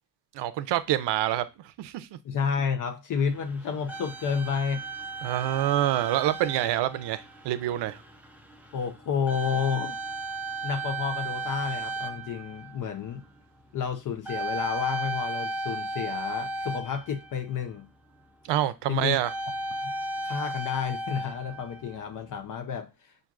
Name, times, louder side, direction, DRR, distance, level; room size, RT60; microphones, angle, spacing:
voice 1, 0.3-1.5 1.8-2.1 5.2-8.0 18.5-19.3, right 13 dB, 85° right, 0.5 m, -26 dB
voice 2, 2.2-4.8 8.7-10.0 10.6-13.2 13.7-17.9 18.9-19.2 19.8-19.9 20.2-23.1, left 6 dB, 50° left, 0.6 m, -30 dB
sound 1, 3.2-17.7 19.1-22.4, right 2 dB, 5° right, 0.5 m, -36 dB
5.9 x 2.6 x 2.4 m
cardioid pair, 130°, 41 cm